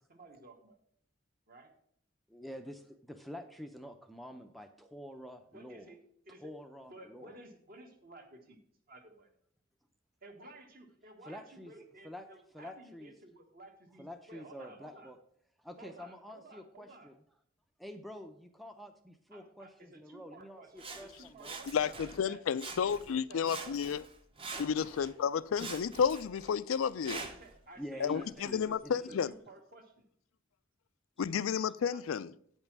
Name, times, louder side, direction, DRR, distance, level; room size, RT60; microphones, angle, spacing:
voice 1, 0.1-0.8 1.5-1.7 5.5-6.0 6.3-6.5 6.9-8.6 8.9-9.3 10.2-15.1 15.8-17.1 19.3-22.0 22.2-23.0 23.3-23.8 27.2-28.7 29.1-30.0 31.9-32.0, right 2 dB, 45° right, 1.5 m, -54 dB
voice 2, 2.3-5.9 6.4-7.4 11.2-11.7 12.0-12.3 12.5-13.1 14.0-15.2 15.6-17.2 17.8-21.6 22.0-22.1 25.6-25.7 27.8-29.3, equal, ahead, 0.5 m, -47 dB
Sawing, 20.8-22.2 22.5-23.2 23.4-25.1 25.5-27.5 28.2-28.3, right 3 dB, 25° right, 0.8 m, -45 dB
voice 3, 21.7-24.0 24.6-27.3 28.0-29.3 31.2-32.3, left 7 dB, 90° left, 0.4 m, -32 dB
9.0 x 5.5 x 5.9 m
head